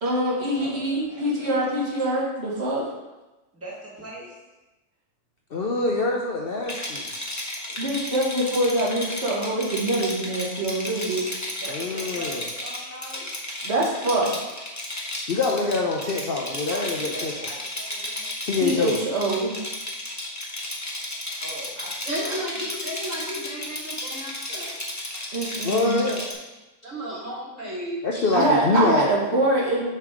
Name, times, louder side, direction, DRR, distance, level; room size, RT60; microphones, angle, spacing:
voice 1, 0.0-2.9 7.8-11.5 13.6-14.4 18.6-19.6 25.3-26.1 28.3-29.8, right 1 dB, 55° right, -5 dB, 1.8 m, -24 dB
voice 2, 0.5-1.7 3.5-4.3 11.6-13.3 16.7-18.3 21.4-22.4, right 1 dB, 10° right, -5 dB, 1.3 m, -41 dB
voice 3, 5.5-7.1 11.7-12.5 15.3-17.5 18.5-19.0 25.6-26.3 28.0-29.1, left 3 dB, 55° left, -1 dB, 0.7 m, -25 dB
Rattle, 6.6-26.3, left 1 dB, 15° left, 0.7 m, -33 dB
voice 4, 22.0-24.8 26.8-28.0, equal, 70° right, -6 dB, 2.2 m, -33 dB
6.7 x 3.4 x 4.9 m, 1.1 s
omnidirectional pair, 1.4 m